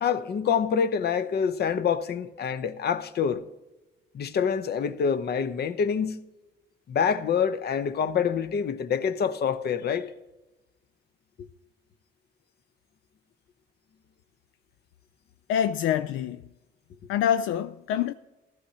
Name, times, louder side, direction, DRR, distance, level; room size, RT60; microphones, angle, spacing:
voice 1, 0.0-3.4 4.1-6.2 6.9-10.1, left 7 dB, 55° left, 0.8 m, -26 dB
voice 2, 15.5-16.5 17.1-18.1, left 9 dB, 85° left, 0.4 m, -26 dB
14.5 x 13.0 x 2.8 m
cardioid pair, 90°, 20 cm